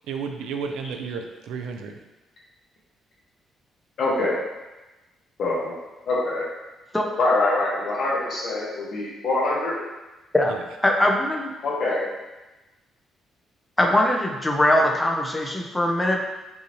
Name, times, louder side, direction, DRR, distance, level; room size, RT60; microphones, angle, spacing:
voice 1, 0.1-2.0 10.5-10.6, right 5 dB, 90° right, 4 dB, 0.4 m, -32 dB
voice 2, 4.0-4.4 5.4-5.8 6.0-6.4 7.2-9.8 11.6-12.1, left 2 dB, 60° left, -5 dB, 1.5 m, -24 dB
voice 3, 10.8-11.5 13.8-16.3, left 1 dB, 10° left, 0 dB, 0.6 m, -21 dB
5.4 x 2.7 x 3.1 m, 1.1 s
cardioid pair, 90°, 0 cm